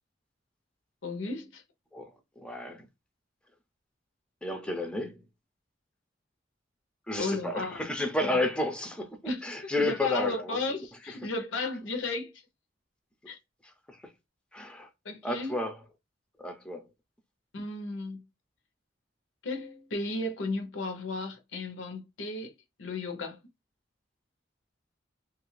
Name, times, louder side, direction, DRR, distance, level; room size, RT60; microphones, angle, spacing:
voice 1, 1.0-1.6 7.2-7.9 8.3-8.4 9.2-12.3 13.3-13.4 15.0-15.6 17.5-18.2 19.4-22.5 22.8-23.4, left 2 dB, 80° left, 0.7 m, -34 dB
voice 2, 2.4-2.8 4.4-5.1 7.1-9.1 9.4-10.6 14.5-14.9 15.2-15.8 16.4-16.8, left 1 dB, 5° left, 0.4 m, -31 dB
2.7 x 2.4 x 3.1 m
head